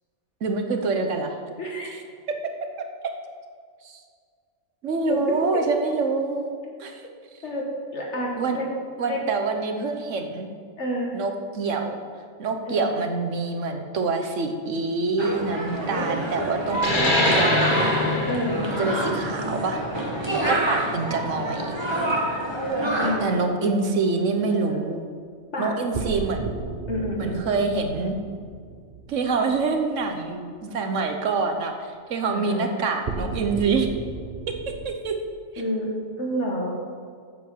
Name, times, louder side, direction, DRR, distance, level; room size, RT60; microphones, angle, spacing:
voice 1, 0.4-1.4 3.8-4.0 4.8-6.5 6.8-7.0 8.4-8.6 9.0-10.5 11.1-12.0 12.4-17.9 18.7-19.8 20.5-21.8 23.2-25.0 25.6-26.5 27.2-28.2 29.1-33.9 34.8-35.2, right 4 dB, 75° right, 5 dB, 1.3 m, -26 dB
voice 2, 1.6-1.9 4.9-5.2 7.4-7.7 7.9-8.7 9.1-9.2 10.8-11.1 12.7-12.9 18.3-18.6 23.0-23.3 23.6-23.8 24.5-24.8 25.5-25.7 26.4-26.5 26.9-27.4 32.3-32.8 35.6-36.7, left 1 dB, 65° left, -2 dB, 1.7 m, -29 dB
sound 1, 15.2-23.1, right 1 dB, 20° right, 1.5 m, -27 dB
sound 2, 16.7-21.9, left 1 dB, 40° left, 1.6 m, -25 dB
sound 3, 22.6-23.1 25.9-30.2 33.1-34.9, right 4 dB, 50° right, 1.0 m, -35 dB
8.4 x 7.1 x 7.3 m, 2.1 s
omnidirectional pair, 1.3 m